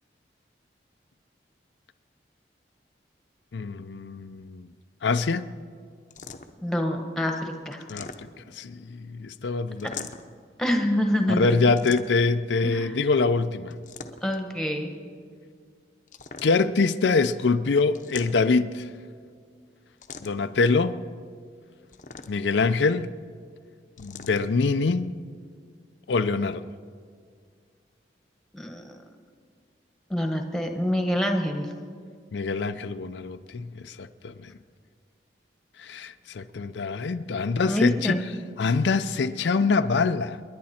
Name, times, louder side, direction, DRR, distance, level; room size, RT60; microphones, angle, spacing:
voice 1, 3.5-4.7 5.0-5.5 7.9-8.3 8.5-10.1 11.4-13.7 16.4-18.9 20.2-21.0 22.3-23.1 24.0-25.2 26.1-26.6 32.3-34.5 35.8-38.2 38.6-40.4, left 4 dB, 85° left, 0.5 m, -24 dB
sound 1, 6.1-6.7 7.7-8.6 9.8-10.4 11.8-12.4 13.7-14.5 16.1-16.8 18.0-18.7 20.0-20.6 21.9-22.6 24.0-24.5, left 5 dB, 45° left, 0.7 m, -42 dB
voice 2, 6.6-7.8 10.6-11.5 12.6-13.0 14.2-14.9 28.5-29.0 30.1-31.7 37.3-38.2, equal, 5° left, 1.2 m, -26 dB
29.0 x 10.5 x 4.3 m
head